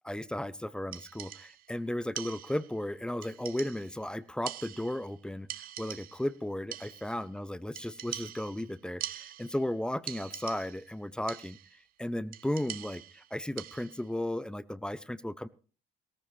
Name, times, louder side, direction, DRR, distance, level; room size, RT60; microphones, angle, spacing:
voice 1, 0.0-5.5 5.8-11.6 12.0-15.5, left 1 dB, 5° left, 18 dB, 0.5 m, -35 dB
sound 1, 0.9-1.7 2.2-2.8 3.2-4.0 4.5-5.2 5.5-6.4 6.7-7.3 7.8-9.7 10.1-10.9 11.3-11.8 12.3-14.1, right 12 dB, 60° right, 0.6 m, -43 dB
18.0 x 14.0 x 3.2 m, 0.37 s
cardioid pair, 110°, 17 cm